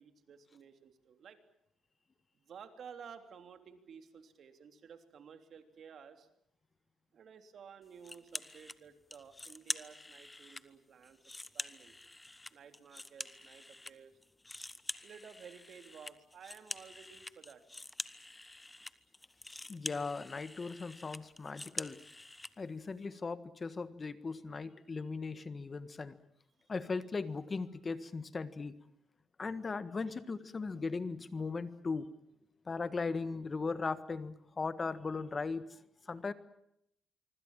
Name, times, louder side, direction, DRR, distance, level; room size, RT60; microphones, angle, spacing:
voice 1, 0.0-1.4 2.3-6.3 7.1-11.2 11.5-11.9 12.5-14.2 15.0-17.6, right 7 dB, 60° right, 7 dB, 3.3 m, -54 dB
sound 1, 8.0-8.8 9.1-10.6 11.0-13.9 14.2-22.5, left 2 dB, 15° left, 1.2 m, -45 dB
voice 2, 19.7-22.0 22.6-26.2 26.7-28.7 29.4-32.1 32.6-36.3, left 4 dB, 35° left, 13 dB, 1.5 m, -38 dB
25.5 x 25.0 x 7.4 m, 0.75 s
cardioid pair, 90°, 0 cm